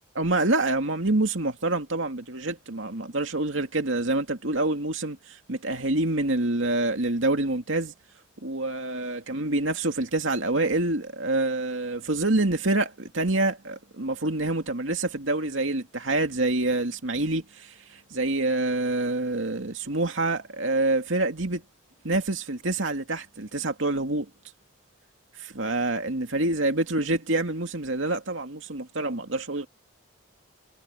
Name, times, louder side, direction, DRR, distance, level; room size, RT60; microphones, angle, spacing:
voice 1, 0.1-7.9 8.4-21.6 22.0-24.3 25.4-29.7, right 2 dB, 70° right, 2.5 m, -26 dB
head